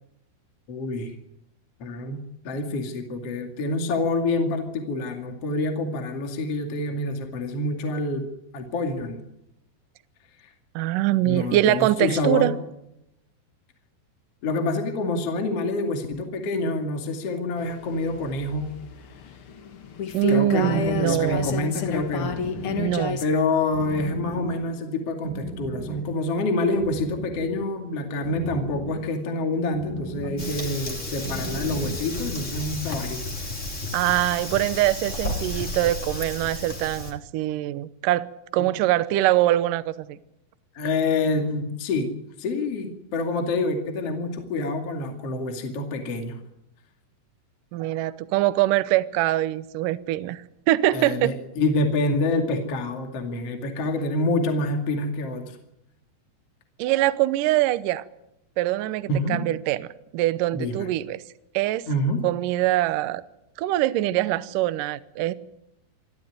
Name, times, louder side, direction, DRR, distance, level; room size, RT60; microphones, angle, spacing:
voice 1, 0.7-1.1 1.8-8.2 8.5-9.2 10.4-10.5 11.2-12.5 14.4-18.7 20.3-22.4 23.2-33.2 38.6-38.7 40.7-46.4 50.9-55.5 59.1-59.4 60.5-60.9 61.9-62.2, left 2 dB, 40° left, 4 dB, 2.8 m, -27 dB
voice 2, 10.8-12.5 20.1-21.6 22.8-23.2 33.9-40.2 47.7-51.3 56.8-58.0 58.6-59.9 60.1-61.2 61.5-61.9 62.2-63.2 63.6-65.3, right 15 dB, 80° right, 14 dB, 1.9 m, -23 dB
sound 1, 17.6-23.2, left 8 dB, 80° left, 1.2 m, -31 dB
sound 2, 20.7-32.1, right 3 dB, 55° right, 3.9 m, -38 dB
Fire, 30.4-37.1, left 2 dB, 20° left, 2.7 m, -32 dB
27.0 x 12.5 x 9.5 m, 0.86 s
omnidirectional pair, 5.0 m